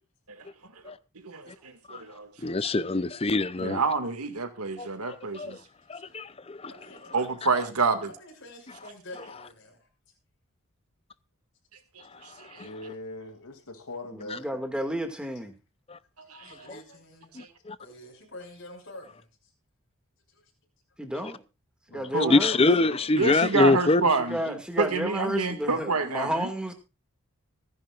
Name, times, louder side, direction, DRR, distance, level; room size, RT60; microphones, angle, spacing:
voice 1, 1.2-2.3 3.6-5.6 7.1-8.1 12.0-12.7 16.2-16.7 17.4-17.5 22.1-22.4 23.2-26.5, right 4 dB, 90° right, 2.1 m, -28 dB
voice 2, 2.4-3.8 4.8-4.9 5.3-5.6 5.9-6.7 12.6-12.7 15.9-16.0 17.4-17.8 22.3-24.0, left 2 dB, 25° left, 0.6 m, -24 dB
voice 3, 6.7-7.2 8.2-9.9 16.2-17.4 17.8-19.5 20.3-20.5, left 1 dB, 55° left, 6.1 m, -47 dB
voice 4, 12.6-14.5 16.5-16.7 21.9-23.1, left 2 dB, 85° left, 2.6 m, -42 dB
voice 5, 14.1-15.6 21.0-21.4 21.9-22.6 24.2-26.7, equal, 5° right, 2.1 m, -31 dB
25.0 x 10.5 x 2.5 m
head